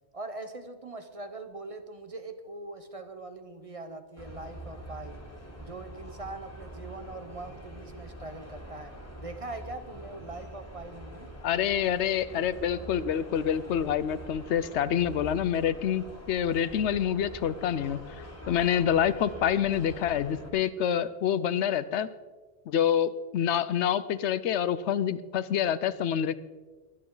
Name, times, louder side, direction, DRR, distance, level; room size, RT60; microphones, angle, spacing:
voice 1, 0.1-5.2 5.6-11.3, right 2 dB, 35° right, 8 dB, 0.9 m, -42 dB
sound 1, 4.2-20.5, equal, 15° left, 2.3 m, -45 dB
voice 2, 11.4-18.2 18.5-22.1 22.7-26.3, left 9 dB, 85° left, 16 dB, 0.9 m, -27 dB
22.5 x 9.5 x 3.9 m, 1.3 s
omnidirectional pair, 1.1 m